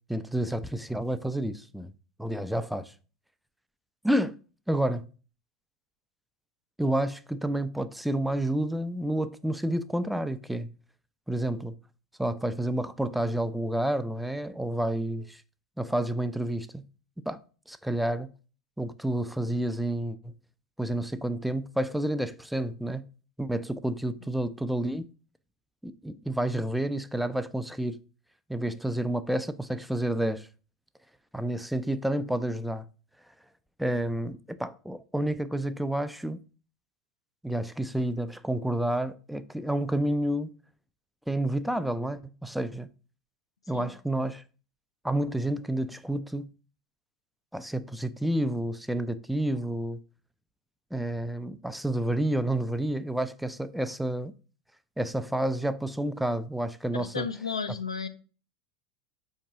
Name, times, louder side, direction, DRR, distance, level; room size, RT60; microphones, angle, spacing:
voice 1, 0.1-1.9 2.2-2.9 4.0-4.4 4.7-5.1 6.8-10.7 11.3-11.7 12.2-15.4 15.8-16.8 17.3-17.4 17.7-18.3 18.8-20.3 20.8-23.0 23.4-25.1 25.8-28.0 28.5-30.5 31.3-32.9 33.8-36.4 37.4-40.5 41.3-42.9 43.7-44.4 45.0-46.5 47.5-50.0 50.9-54.3 55.0-57.3, right 1 dB, ahead, 0.3 m, -29 dB
voice 2, 57.0-58.1, left 5 dB, 80° left, 0.4 m, -33 dB
4.5 x 2.8 x 3.5 m
figure-of-eight pair, 80°, 3 cm